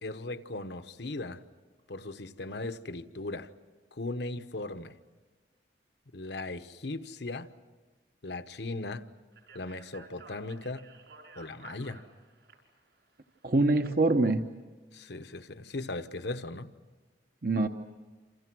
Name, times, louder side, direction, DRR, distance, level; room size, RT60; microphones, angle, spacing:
voice 1, 0.0-1.4 1.9-3.5 3.9-4.9 6.1-7.5 8.2-9.0 9.5-10.9 11.4-12.0 14.9-16.7, left 2 dB, 70° left, 10 dB, 1.1 m, -38 dB
Speech, 9.3-13.9, right 4 dB, 70° right, 6.1 m, -53 dB
voice 2, 13.4-14.6 17.4-17.7, right 2 dB, 55° right, 6 dB, 0.9 m, -24 dB
28.5 x 27.5 x 6.2 m, 1.3 s
head